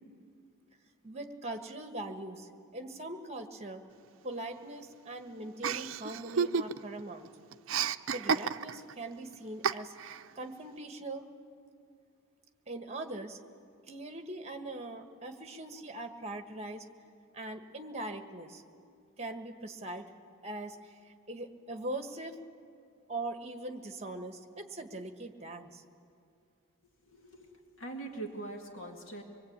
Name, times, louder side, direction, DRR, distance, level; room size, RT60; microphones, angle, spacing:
voice 1, 1.0-3.8 4.2-7.3 8.1-9.9 10.3-11.3 12.7-13.4 13.9-16.8 17.3-18.6 19.2-20.1 20.4-22.4 23.1-25.8, right 2 dB, 30° right, 6 dB, 1.4 m, -41 dB
Chuckle chortle, 5.6-7.0 7.3-8.9 9.6-10.2, right 6 dB, 70° right, 0.5 m, -31 dB
voice 2, 27.1-29.2, right 2 dB, 65° left, 2 dB, 2.3 m, -43 dB
25.0 x 21.0 x 8.8 m, 2.3 s
head